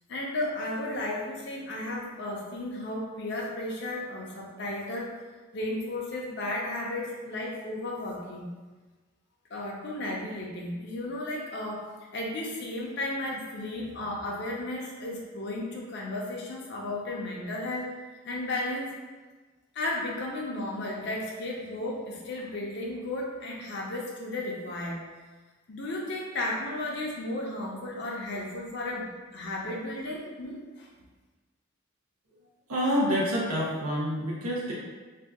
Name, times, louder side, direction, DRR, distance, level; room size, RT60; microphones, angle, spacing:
voice 1, 0.1-5.1 5.5-8.4 9.5-11.8 12.1-17.9 18.2-18.9 19.7-25.0 25.7-29.1 29.3-30.9, left 1 dB, 50° left, -2 dB, 0.5 m, -34 dB
voice 2, 32.7-34.7, equal, 85° right, -6 dB, 0.7 m, -27 dB
2.7 x 2.3 x 3.4 m, 1.3 s
head